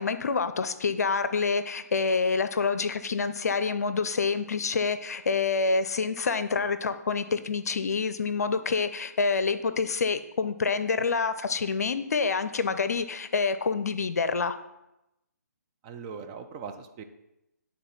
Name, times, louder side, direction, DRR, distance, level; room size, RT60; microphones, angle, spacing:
voice 1, 0.0-14.6, left 4 dB, 65° left, 11 dB, 0.5 m, -27 dB
voice 2, 15.8-17.0, right 6 dB, 20° right, 6 dB, 0.4 m, -40 dB
9.2 x 3.8 x 4.2 m, 0.90 s
figure-of-eight pair, 140°, 9 cm